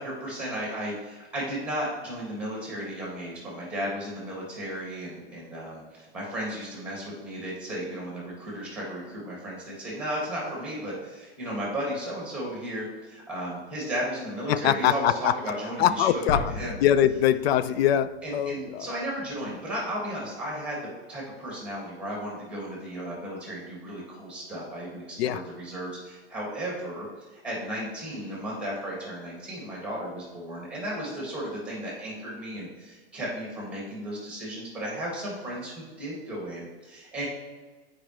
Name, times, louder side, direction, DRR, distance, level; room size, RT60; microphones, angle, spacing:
voice 1, 0.0-16.8 18.2-27.1 27.3-37.2, equal, 5° right, -4 dB, 1.8 m, -34 dB
voice 2, 14.5-15.3 15.8-16.5 16.8-18.9 25.2-25.4, left 10 dB, 80° left, 14 dB, 0.5 m, -23 dB
sound 1, 16.3-19.1, left 3 dB, 35° left, 0.6 m, -36 dB
8.6 x 5.0 x 3.1 m, 1.4 s
supercardioid pair, 170°, 30 cm